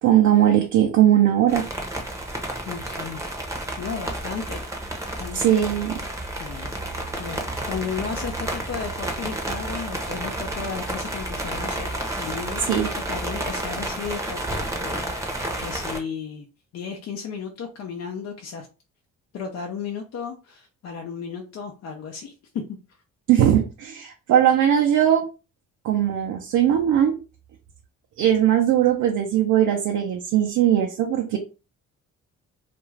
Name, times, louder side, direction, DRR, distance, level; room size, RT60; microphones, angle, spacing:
voice 1, 0.0-1.7 5.3-6.0 12.7-12.9 23.3-25.3 25.8-27.2 28.2-31.4, right 10 dB, 75° right, 2 dB, 0.6 m, -19 dB
sound 1, 1.5-16.0, right 1 dB, 10° right, 0.7 m, -31 dB
voice 2, 2.7-3.2 3.8-4.7 5.0-5.4 6.3-6.7 7.2-7.4 7.6-16.5 16.7-18.7 19.3-22.8, left 6 dB, 60° left, 2 dB, 0.6 m, -34 dB
2.5 x 2.3 x 3.1 m, 0.32 s
cardioid pair, 90°, 30 cm